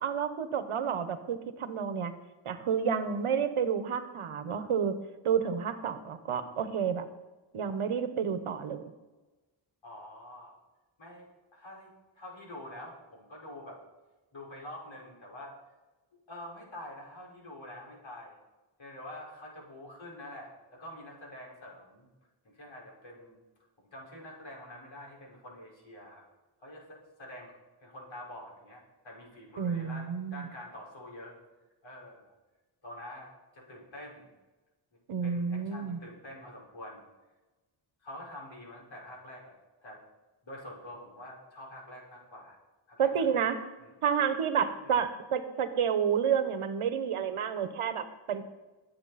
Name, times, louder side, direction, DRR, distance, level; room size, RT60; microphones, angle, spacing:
voice 1, 0.0-2.1 2.4-5.0 5.2-7.1 7.5-8.8 29.6-30.5 35.1-36.0 43.0-43.6 44.0-48.4, right 7 dB, 90° right, 10 dB, 1.2 m, -30 dB
voice 2, 9.8-10.6 11.0-13.8 14.3-15.5 16.3-18.4 18.8-22.1 22.5-23.4 23.9-26.2 26.6-27.5 27.8-31.4 31.8-32.3 32.8-34.3 35.2-37.1 38.0-39.5 39.8-40.0 40.4-42.6 42.9-43.3 43.8-43.9 44.8-45.0, left 1 dB, 65° left, -3 dB, 5.0 m, -46 dB
20.5 x 8.7 x 4.2 m, 1.2 s
wide cardioid pair, 105°, 49 cm